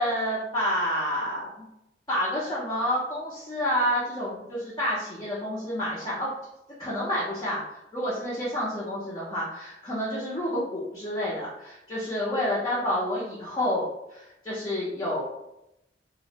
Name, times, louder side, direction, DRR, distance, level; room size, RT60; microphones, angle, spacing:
voice 1, 0.0-1.7 2.1-6.3 6.8-15.2, equal, 25° left, -8 dB, 0.5 m, -29 dB
2.4 x 2.0 x 2.8 m, 0.87 s
head